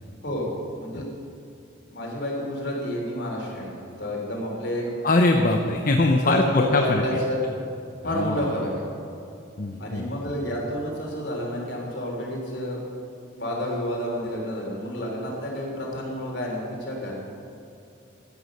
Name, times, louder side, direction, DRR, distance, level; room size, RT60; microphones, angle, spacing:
voice 1, 1.9-4.9 6.2-7.4 8.0-8.8 9.8-12.8 13.3-17.1, left 1 dB, 65° left, -2 dB, 3.5 m, -29 dB
voice 2, 5.0-7.0 8.1-8.4 9.6-10.1, left 2 dB, 45° left, 3 dB, 0.7 m, -22 dB
14.5 x 9.5 x 6.6 m, 2.7 s
head